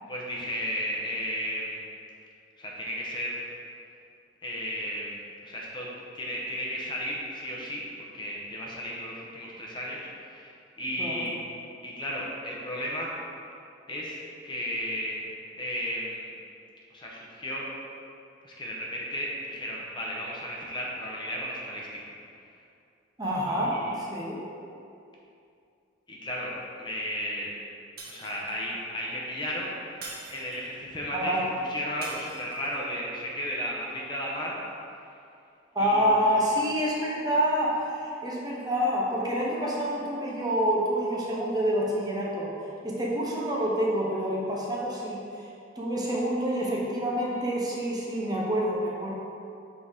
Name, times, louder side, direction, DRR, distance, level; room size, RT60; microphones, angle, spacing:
voice 1, 0.1-1.8 2.6-3.4 4.4-5.9 6.1-7.9 8.1-11.3 11.8-13.2 13.9-15.2 15.6-16.3 16.9-17.7 18.4-22.1 23.4-24.0 26.1-26.5 26.8-27.5 28.1-34.5 35.8-36.4, equal, 25° left, -4 dB, 0.9 m, -34 dB
voice 2, 23.2-24.4 31.1-31.4 35.7-42.5 42.8-45.2 45.8-49.1, equal, 20° right, -4 dB, 0.7 m, -27 dB
Shatter, 28.0-28.7 30.0-30.8 32.0-32.8, right 3 dB, 55° right, 1.0 m, -43 dB
7.5 x 4.0 x 3.5 m, 2.5 s
head